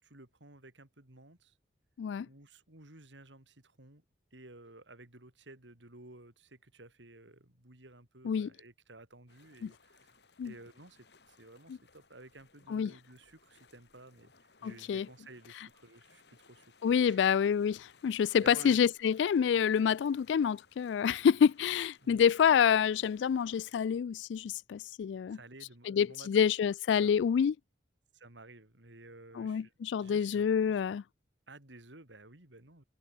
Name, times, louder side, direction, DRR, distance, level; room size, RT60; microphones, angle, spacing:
voice 1, 0.0-1.5 2.2-4.0 4.3-10.1 10.4-17.2 18.4-18.9 22.0-22.2 25.3-26.5 27.0-27.1 28.1-29.7 30.0-30.8 31.5-32.8, right 2 dB, 90° right, 4.1 m, -54 dB
sound 1, 9.3-23.7, left 4 dB, 65° left, 3.0 m, -64 dB
voice 2, 14.6-15.1 16.8-25.4 25.9-27.5 29.4-31.0, left 7 dB, 80° left, 0.3 m, -27 dB
head